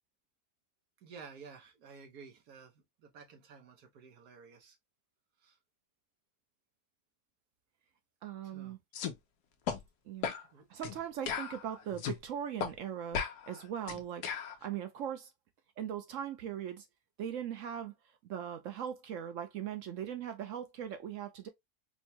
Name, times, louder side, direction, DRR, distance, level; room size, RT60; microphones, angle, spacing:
voice 1, 1.0-2.7 3.0-4.7 5.4-5.5 8.5-8.8 10.5-10.7, right 5 dB, 85° right, 1.5 m, -52 dB
voice 2, 8.2-8.8 10.1-10.3 10.7-14.3 14.6-15.3 15.8-16.9 17.2-17.9 18.2-21.5, right 9 dB, 65° right, 0.9 m, -39 dB
sound 1, 8.9-9.1 9.7-9.8 10.2-10.4 10.8-11.0 11.3-12.2 12.6-12.7 13.1-14.5, left 7 dB, 90° left, 1.2 m, -36 dB
4.4 x 2.2 x 2.7 m
omnidirectional pair, 1.6 m